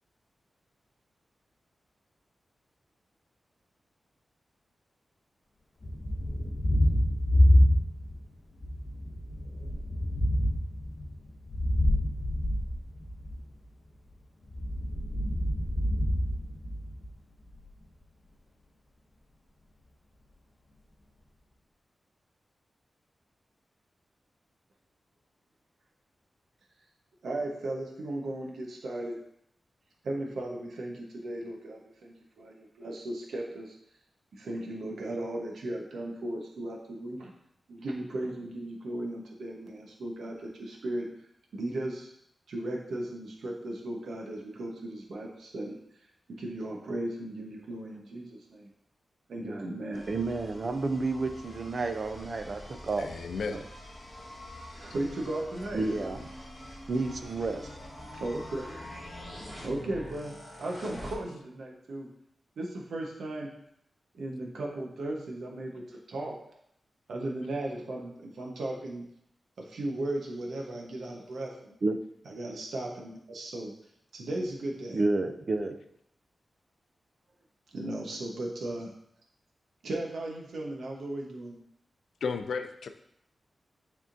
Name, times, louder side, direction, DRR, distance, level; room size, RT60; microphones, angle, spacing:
Thunder, 5.8-8.2 8.6-13.4 14.4-17.1, left 1 dB, 35° left, 0.7 m, -26 dB
voice 1, 27.2-29.2 30.0-33.7 34.3-37.3 37.7-41.1 41.5-42.1 42.5-45.8 46.4-48.7 49.3-50.1 54.2-54.3 54.7-55.8 58.1-58.6 59.6-62.1 62.6-63.5 64.1-66.4 67.1-69.0 69.6-71.8 72.2-73.7 74.1-75.0 77.7-78.9 79.8-81.6, right 1 dB, 80° right, -1 dB, 1.0 m, -36 dB
sound 1, 49.9-61.1, left 1 dB, ahead, 1.5 m, -45 dB
voice 2, 50.1-53.1 53.5-53.6 55.7-56.2 56.9-57.7 71.8-72.0 74.9-75.8, right 3 dB, 40° right, 8 dB, 0.5 m, -30 dB
voice 3, 53.0-53.6 82.2-82.9, left 5 dB, 80° left, 8 dB, 0.4 m, -33 dB
9.9 x 3.6 x 2.6 m, 0.72 s
wide cardioid pair, 175°, 0 cm